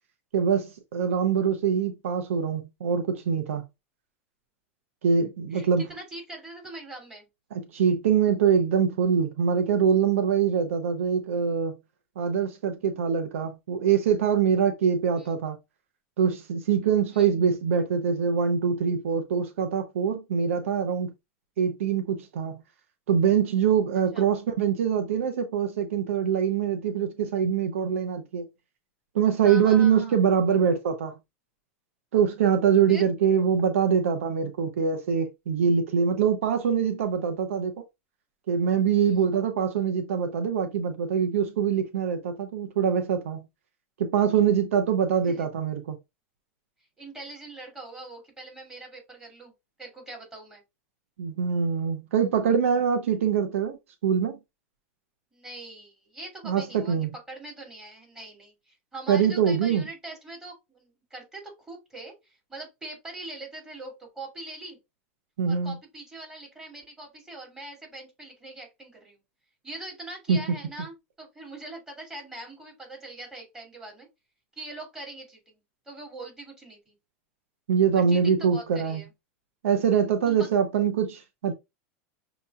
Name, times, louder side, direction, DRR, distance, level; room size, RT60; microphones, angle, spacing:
voice 1, 0.3-3.6 5.0-5.9 7.5-11.8 12.2-15.6 16.2-21.1 21.6-22.6 23.1-28.4 29.1-31.1 32.1-37.7 38.5-43.4 44.0-46.0 51.2-53.8 54.0-54.4 56.4-57.1 59.1-59.9 65.4-65.7 70.3-70.4 77.7-79.0 79.6-81.5, right 7 dB, 85° right, 0.8 m, -24 dB
voice 2, 5.5-7.3 15.1-15.3 17.1-17.3 24.1-24.2 29.4-30.2 32.9-33.1 39.0-39.2 45.3-45.5 47.0-49.5 49.8-50.6 55.3-64.8 65.5-69.2 69.6-74.1 74.5-77.0 77.9-79.1 80.2-80.5, right 2 dB, 10° right, 2.8 m, -42 dB
6.5 x 3.0 x 2.4 m
supercardioid pair, 125°, 7 cm